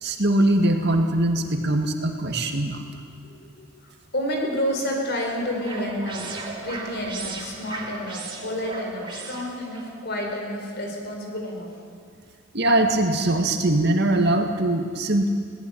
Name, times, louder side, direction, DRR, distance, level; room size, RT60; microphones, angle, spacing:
voice 1, 0.0-2.8 12.5-15.3, right 1 dB, 55° right, 4 dB, 2.0 m, -21 dB
voice 2, 3.2-11.7, equal, 55° left, 1 dB, 5.0 m, -30 dB
sound 1, 4.7-9.9, right 3 dB, 25° right, 3.2 m, -37 dB
21.5 x 18.5 x 8.7 m, 2.2 s
head